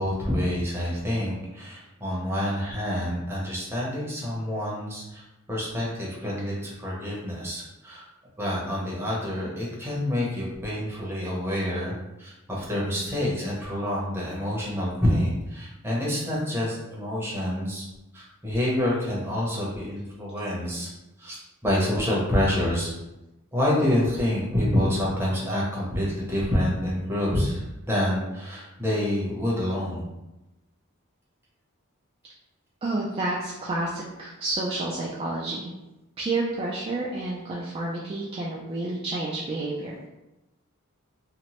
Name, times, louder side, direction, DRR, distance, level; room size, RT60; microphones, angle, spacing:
voice 1, 0.0-5.2 5.5-8.1 8.4-17.9 18.1-20.9 21.2-21.4 21.6-22.9 23.5-30.1, left 1 dB, 10° right, -5 dB, 0.7 m, -27 dB
voice 2, 32.8-35.7 36.2-40.1, right 2 dB, 25° right, -4 dB, 0.3 m, -30 dB
2.9 x 2.1 x 2.9 m, 0.99 s
head